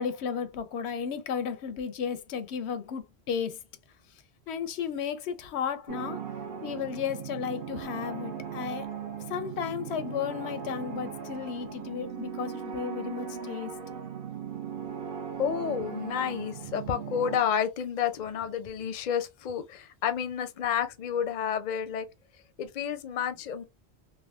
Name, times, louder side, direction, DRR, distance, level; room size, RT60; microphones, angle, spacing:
voice 1, 0.0-3.6 4.5-6.2 6.6-8.9 9.3-14.0, left 7 dB, 90° left, 0.9 m, -34 dB
sound 1, 5.9-17.4, right 7 dB, 60° right, 0.9 m, -38 dB
voice 2, 15.4-22.1 22.6-23.6, left 8 dB, 55° left, 0.6 m, -30 dB
3.4 x 2.4 x 2.3 m
omnidirectional pair, 1.1 m